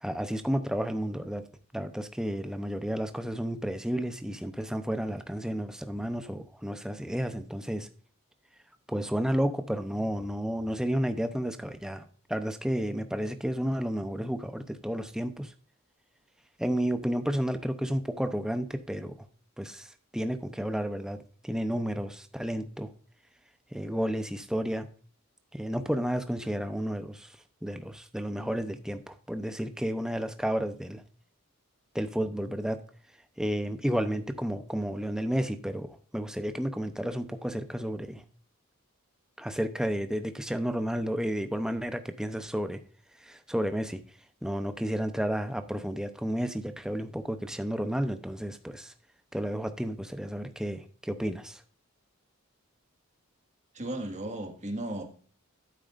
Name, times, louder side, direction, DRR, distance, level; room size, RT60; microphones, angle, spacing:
voice 1, 0.0-1.4 1.7-7.9 8.9-15.5 16.6-19.2 19.6-22.9 23.7-24.9 25.5-27.3 27.6-31.0 31.9-32.8 33.4-38.2 39.4-42.8 43.2-44.0 44.4-48.9 49.3-51.6, equal, 5° right, 8 dB, 0.7 m, -32 dB
voice 2, 53.7-55.0, right 1 dB, 35° right, 3 dB, 1.8 m, -35 dB
11.0 x 9.1 x 2.6 m, 0.43 s
head